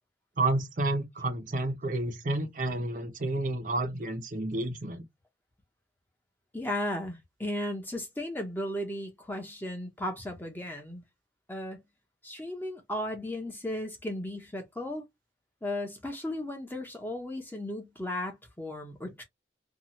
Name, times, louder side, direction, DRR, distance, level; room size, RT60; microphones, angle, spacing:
voice 1, 0.4-5.0, right 2 dB, 45° right, 0.6 m, -30 dB
voice 2, 6.5-11.0 11.5-11.8 12.2-15.1 15.6-19.2, left 1 dB, 10° left, 0.7 m, -35 dB
2.8 x 2.3 x 2.8 m
head